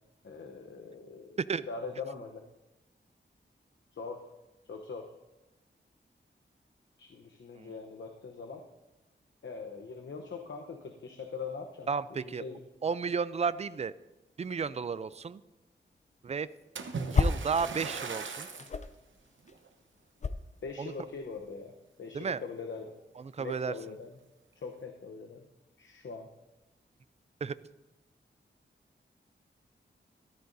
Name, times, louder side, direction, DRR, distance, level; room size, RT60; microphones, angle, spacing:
voice 1, 0.2-1.4 1.7-2.4 3.9-4.2 4.7-5.1 7.0-8.6 9.4-11.9 12.2-12.6 20.6-21.7 22.0-22.9 23.4-24.1 24.6-25.5 25.8-26.3, left 4 dB, 80° left, 3 dB, 0.8 m, -42 dB
voice 2, 11.9-12.4 12.8-13.9 14.4-15.4 16.2-16.5 17.1-18.5 20.8-20.9 22.1-22.4 23.2-23.7 27.4-27.6, right 5 dB, 35° right, 15 dB, 0.4 m, -33 dB
sound 1, 16.0-17.6 17.9-21.6, left 4 dB, 40° left, 0.4 m, -33 dB
Splash splatter, 16.8-18.8 19.5-19.7 20.3-20.4, right 5 dB, 85° right, 0.9 m, -39 dB
13.5 x 13.0 x 2.6 m, 1.0 s
wide cardioid pair, 135°, 19 cm